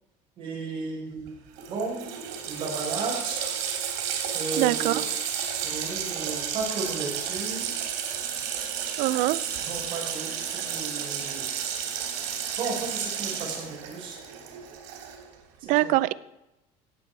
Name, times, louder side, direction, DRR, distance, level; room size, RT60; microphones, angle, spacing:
voice 1, 0.4-1.3 1.7-2.0 2.5-3.5 4.3-5.0 5.6-7.7 9.7-11.5 12.6-14.2 15.6-15.9, right 4 dB, 35° right, -2 dB, 4.7 m, -34 dB
Water tap faucet, 1.3-1.4 1.6-15.3, right 8 dB, 85° right, 3.0 m, -32 dB
voice 2, 4.6-5.0 9.0-9.4 15.7-16.1, right 18 dB, 60° right, 18 dB, 0.5 m, -23 dB
16.5 x 8.3 x 4.6 m, 0.94 s
cardioid pair, 165°, 15 cm